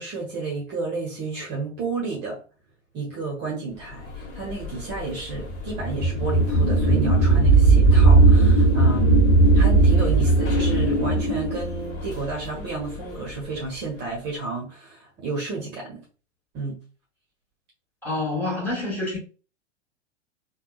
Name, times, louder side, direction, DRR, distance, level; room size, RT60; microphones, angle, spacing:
voice 1, 0.0-2.4 2.9-9.2 9.5-16.0 16.5-16.8, right 3 dB, 30° right, 1.0 m, -31 dB
sound 1, 4.2-13.1, right 3 dB, 35° left, 1.2 m, -18 dB
voice 2, 18.0-19.2, left 2 dB, 5° left, 1.6 m, -27 dB
3.6 x 2.3 x 2.3 m
figure-of-eight pair, 100°, 36 cm